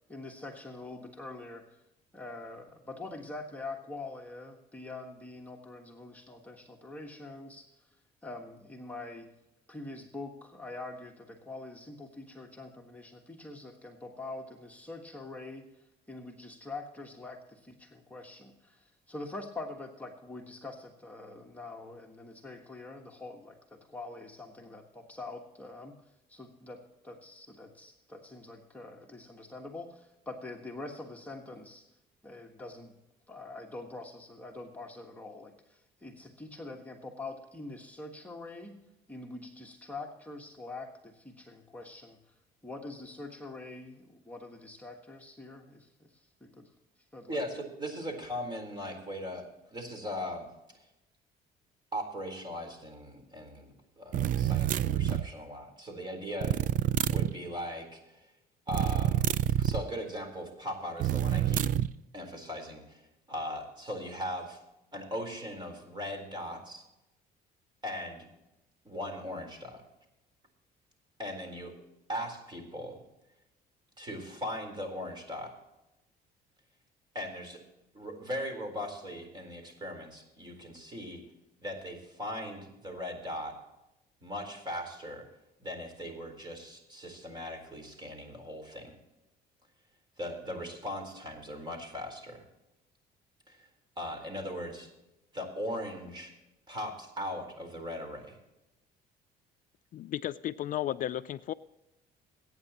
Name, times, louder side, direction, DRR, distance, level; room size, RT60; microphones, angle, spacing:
voice 1, 0.1-1.8 2.1-7.9 8.2-9.3 9.7-15.7 16.1-26.0 26.3-31.9 32.2-32.9 33.3-38.8 39.1-42.2 42.6-46.7 47.1-47.4, left 2 dB, 10° left, 0 dB, 1.5 m, -44 dB
voice 2, 47.3-50.5 50.7-50.9 51.9-56.6 57.1-58.3 58.7-59.3 59.6-61.6 62.1-63.0 63.3-64.6 64.9-66.8 67.8-68.3 68.8-69.8 71.2-71.7 72.1-73.0 74.0-75.5 77.1-77.6 77.9-81.2 81.6-83.6 84.2-85.3 85.6-89.0 90.2-92.4 93.5-93.7 94.0-94.9 95.3-96.3 96.7-98.4, equal, 25° right, 5 dB, 4.0 m, -39 dB
sound 1, 54.1-55.3 56.4-57.3 58.7-59.8 61.0-61.9, right 11 dB, 50° right, 0.5 m, -27 dB
voice 3, 99.9-101.5, left 12 dB, 55° left, 13 dB, 0.4 m, -34 dB
22.5 x 9.3 x 3.0 m, 0.95 s
cardioid pair, 110°, 17 cm